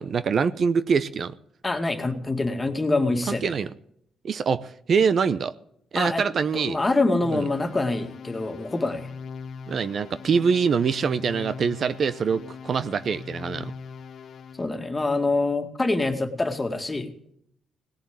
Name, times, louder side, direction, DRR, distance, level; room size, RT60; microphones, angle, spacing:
voice 1, 0.0-1.3 3.3-3.7 4.2-5.5 5.9-6.8 7.3-7.4 9.7-13.7, right 6 dB, 50° right, 14 dB, 0.7 m, -24 dB
voice 2, 1.6-3.5 6.0-6.2 6.5-9.1 14.6-17.1, left 2 dB, 20° left, 6 dB, 2.2 m, -25 dB
sound 1, 7.2-14.8, left 5 dB, 60° left, 1.7 m, -40 dB
18.5 x 7.1 x 9.6 m, 0.69 s
cardioid pair, 90°, 0 cm